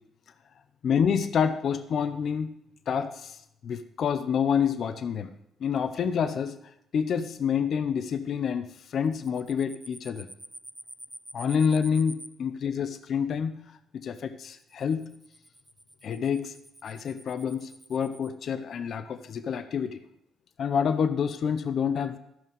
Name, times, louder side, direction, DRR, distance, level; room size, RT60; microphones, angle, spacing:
voice 1, 0.8-2.5 2.9-5.3 5.6-6.6 6.9-10.3 11.3-13.6 13.9-15.1 16.0-16.5 16.8-20.0 20.6-22.2, left 7 dB, 60° left, 10 dB, 0.7 m, -28 dB
sound 1, 9.1-12.3 14.4-18.3, right 1 dB, 5° right, 0.6 m, -47 dB
13.0 x 5.7 x 5.3 m, 0.77 s
cardioid pair, 90°, 0 cm